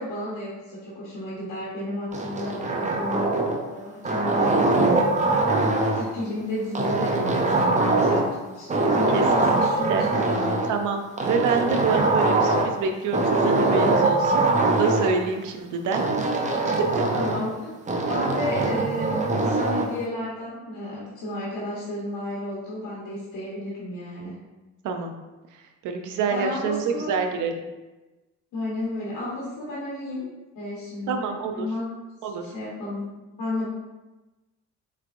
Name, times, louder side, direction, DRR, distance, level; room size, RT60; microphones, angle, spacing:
voice 1, 0.0-3.3 3.7-8.3 8.5-10.8 17.1-24.3 26.1-27.1 28.5-30.3 30.5-31.3 31.5-31.9 32.4-33.1 33.4-33.7, left 1 dB, 85° left, -8 dB, 1.2 m, -32 dB
sound 1, 2.1-3.7 4.0-6.1 6.8-8.4 8.7-10.7 11.2-12.8 13.1-15.1 15.9-17.5 17.9-19.9, right 2 dB, 25° right, 0.6 m, -22 dB
voice 2, 10.7-16.0 16.7-17.0 24.8-25.1 25.5-27.7 31.1-31.7 32.2-32.5, right 5 dB, 80° right, 5 dB, 0.6 m, -27 dB
4.3 x 3.3 x 2.5 m, 1.1 s
cardioid pair, 90°, 30 cm